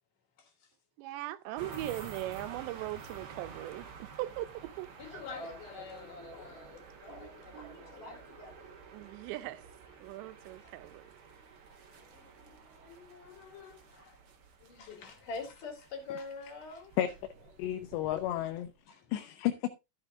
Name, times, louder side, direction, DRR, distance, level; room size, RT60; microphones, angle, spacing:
voice 1, 1.0-5.2 7.1-7.3 7.5-7.8 8.1-8.2 8.9-9.6 10.0-11.1, right 16 dB, 90° right, 3.0 m, -40 dB
sound 1, 1.6-18.8, right 5 dB, 70° right, 1.2 m, -51 dB
voice 2, 5.0-8.5 12.1-12.3 12.7-14.2 14.7-16.9 18.9-19.0, left 4 dB, 55° left, 3.4 m, -45 dB
voice 3, 17.6-18.7 19.1-19.7, left 12 dB, 80° left, 2.8 m, -32 dB
13.0 x 6.7 x 3.6 m
omnidirectional pair, 5.0 m